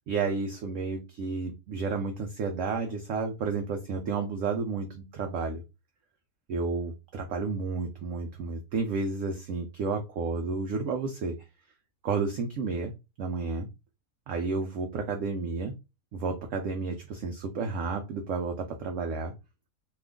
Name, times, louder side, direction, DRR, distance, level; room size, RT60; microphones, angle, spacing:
voice 1, 0.1-5.6 6.5-11.3 12.0-12.9 13.2-13.7 14.3-15.7 16.1-19.3, right 4 dB, 70° right, 4 dB, 0.7 m, -31 dB
2.9 x 2.4 x 3.5 m, 0.26 s
omnidirectional pair, 1.7 m